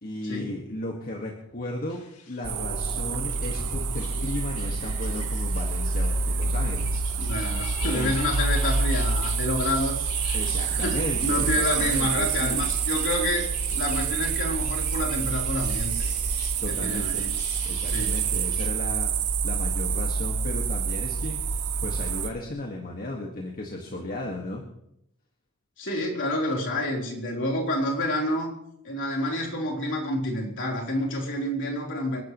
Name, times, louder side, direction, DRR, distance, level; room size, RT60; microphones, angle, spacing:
voice 1, 0.0-7.0 7.8-8.2 10.3-12.6 16.6-17.2 17.7-19.1 19.4-24.6, left 1 dB, 40° left, 0 dB, 1.9 m, -35 dB
sound 1, 1.9-18.7, left 6 dB, 80° left, 2.2 m, -45 dB
sound 2, 2.4-22.3, right 5 dB, 80° right, 1.2 m, -27 dB
voice 2, 7.2-16.1 16.7-17.4 17.8-18.2 25.8-28.5 28.8-32.2, left 1 dB, 60° left, -1 dB, 3.9 m, -29 dB
27.5 x 12.0 x 3.2 m, 0.79 s
head